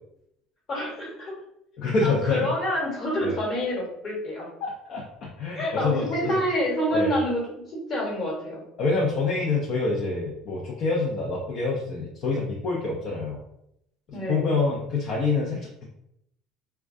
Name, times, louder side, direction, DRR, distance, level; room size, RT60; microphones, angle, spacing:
voice 1, 0.7-1.3 2.0-4.5 5.5-7.4 7.7-8.6 14.1-14.5, equal, 40° left, -3 dB, 1.1 m, -27 dB
voice 2, 1.8-2.5 3.2-3.3 4.6-6.4 6.9-7.2 8.8-13.4 14.3-15.9, left 3 dB, 55° left, -3 dB, 0.5 m, -26 dB
2.2 x 2.2 x 2.6 m, 0.79 s
supercardioid pair, 95°, 0 cm